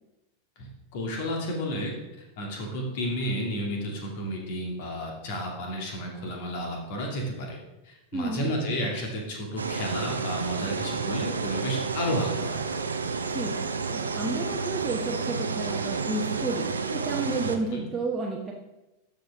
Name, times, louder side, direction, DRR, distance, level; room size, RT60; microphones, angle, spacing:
voice 1, 0.6-7.6 7.8-12.7 17.4-17.8, equal, 50° left, 0 dB, 2.2 m, -32 dB
voice 2, 8.1-8.5 13.3-13.6 13.9-18.5, right 3 dB, 15° right, -3 dB, 1.1 m, -31 dB
sound 1, 9.6-17.6, right 4 dB, 75° right, 0.6 m, -30 dB
13.0 x 5.3 x 3.6 m, 0.97 s
figure-of-eight pair, 90°, 0 cm